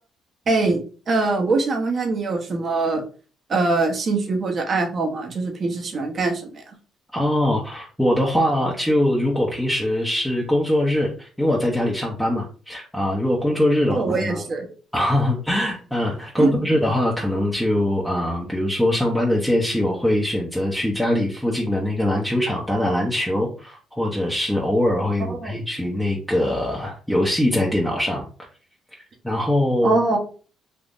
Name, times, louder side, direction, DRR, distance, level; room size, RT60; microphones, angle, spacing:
voice 1, 0.5-0.8 1.1-3.0 3.5-6.6 13.9-14.7 16.4-16.5 25.2-25.6 29.8-30.2, right 3 dB, 45° right, 3 dB, 0.9 m, -23 dB
voice 2, 7.1-14.4 14.9-28.3 29.2-30.0, left 1 dB, ahead, -3 dB, 0.7 m, -22 dB
3.6 x 2.7 x 2.5 m, 0.39 s
cardioid pair, 85°, 0 cm